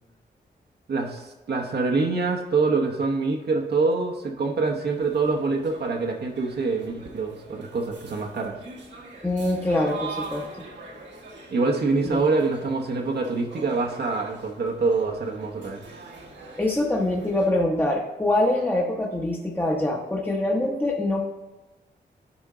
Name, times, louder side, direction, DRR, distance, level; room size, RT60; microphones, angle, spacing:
voice 1, 0.9-8.6 11.5-15.9, right 3 dB, 65° right, 1 dB, 1.0 m, -25 dB
sound 1, 4.9-17.5, right 3 dB, 80° right, 1.4 m, -43 dB
voice 2, 9.2-10.7 12.0-12.2 16.6-21.2, left 1 dB, 10° left, -1 dB, 0.9 m, -24 dB
11.0 x 4.4 x 3.8 m, 1.2 s
cardioid pair, 80°, 18 cm